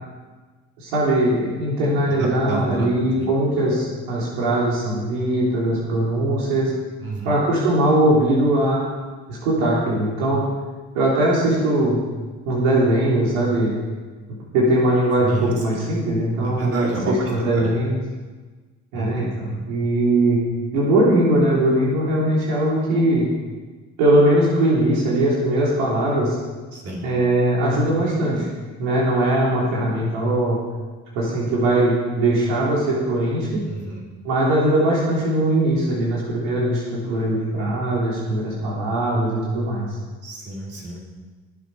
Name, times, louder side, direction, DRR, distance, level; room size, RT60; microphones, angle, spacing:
voice 1, 0.8-6.7 7.2-8.9 9.3-10.5 10.9-12.0 12.5-13.7 14.5-16.7 17.1-18.0 18.9-20.4 20.7-23.3 24.0-26.4 27.0-28.5 28.8-30.6 31.1-33.6 34.2-39.9, right 1 dB, 80° right, -5 dB, 3.6 m, -20 dB
voice 2, 2.2-2.9 3.2-3.3 7.0-7.3 15.2-15.8 16.6-17.2 17.5-17.7 18.9-19.3 26.7-27.0 33.7-34.0 40.2-41.1, right 2 dB, 40° right, -3 dB, 4.3 m, -28 dB
19.5 x 7.8 x 4.9 m, 1.3 s
hypercardioid pair, 55°, 35 cm